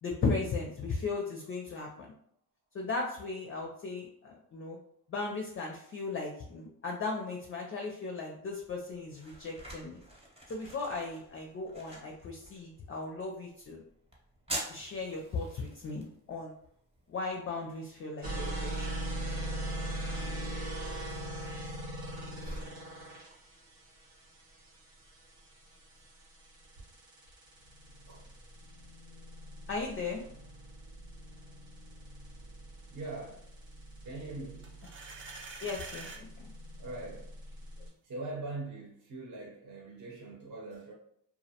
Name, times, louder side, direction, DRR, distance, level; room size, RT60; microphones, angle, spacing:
voice 1, 0.0-2.1 2.7-4.8 5.1-10.0 10.5-13.8 14.7-16.6 17.1-18.9 29.7-30.3 35.6-36.5, left 3 dB, 30° left, 0.4 m, -36 dB
sound 1, 8.5-26.0, right 1 dB, 15° right, 0.8 m, -49 dB
sound 2, 18.2-37.9, right 1 dB, 80° right, 1.0 m, -41 dB
voice 2, 32.9-33.4 34.0-34.7 36.8-37.3 38.0-40.9, right 2 dB, 45° right, 0.8 m, -42 dB
sound 3, 34.6-36.2, right 4 dB, 30° right, 0.4 m, -45 dB
2.3 x 2.0 x 2.7 m
supercardioid pair, 70°, 42 cm